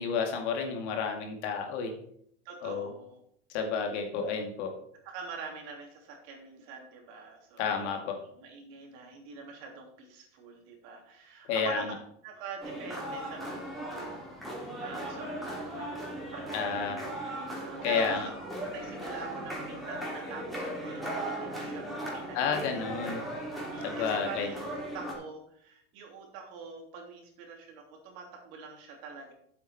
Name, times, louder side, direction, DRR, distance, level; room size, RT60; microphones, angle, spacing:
voice 1, 0.0-2.0 2.6-2.9 3.5-4.8 7.6-8.2 11.5-11.8 16.5-17.0 17.8-18.3 22.3-23.2 23.8-24.5, left 6 dB, 65° left, 3 dB, 2.4 m, -31 dB
voice 2, 2.4-3.2 4.2-4.3 5.0-8.1 8.3-12.0 12.2-21.9 22.1-22.8 23.0-23.2 23.7-29.3, right 5 dB, 60° right, 1 dB, 3.3 m, -45 dB
sound 1, 12.6-25.1, right 1 dB, ahead, 3.3 m, -37 dB
sound 2, 15.4-20.4, right 4 dB, 40° right, 3.7 m, -50 dB
8.6 x 7.9 x 4.7 m, 0.68 s
hypercardioid pair, 110°, 36 cm